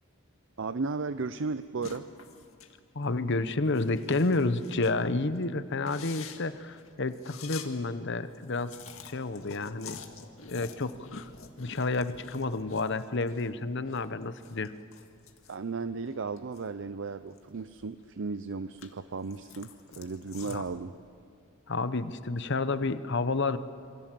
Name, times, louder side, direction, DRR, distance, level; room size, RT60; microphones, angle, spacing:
voice 1, 0.6-2.0 15.5-20.9, right 4 dB, 60° right, 12 dB, 0.6 m, -35 dB
sound 1, 1.8-2.7 3.0-3.2 3.7-5.0 5.3-5.4 5.8-7.7 8.0-8.1 8.3-13.5 13.8-16.7 17.1-18.1 18.5-20.8, left 6 dB, 75° left, 1.9 m, -48 dB
voice 2, 2.9-8.7 9.0-10.0 10.5-11.3 11.6-14.7 20.5-20.6 21.7-23.6, left 3 dB, 55° left, 12 dB, 0.9 m, -30 dB
27.5 x 24.5 x 7.6 m, 2.3 s
head